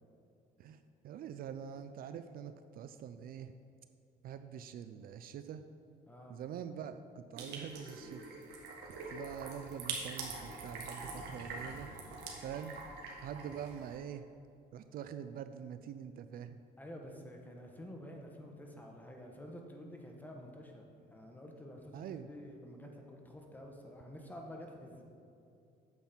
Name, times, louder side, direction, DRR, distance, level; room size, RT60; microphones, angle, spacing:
voice 1, 0.6-3.5 4.2-5.6 6.3-8.3 8.9-11.9 12.4-12.8 13.2-14.2 14.7-16.6 21.9-22.3, right 8 dB, 60° right, 10 dB, 0.4 m, -45 dB
voice 2, 6.1-6.4 16.8-25.0, equal, 10° left, 1 dB, 1.3 m, -49 dB
sound 1, 7.4-14.0, right 3 dB, 80° right, 1.6 m, -44 dB
9.1 x 7.5 x 4.4 m, 2.6 s
cardioid pair, 110°, 17 cm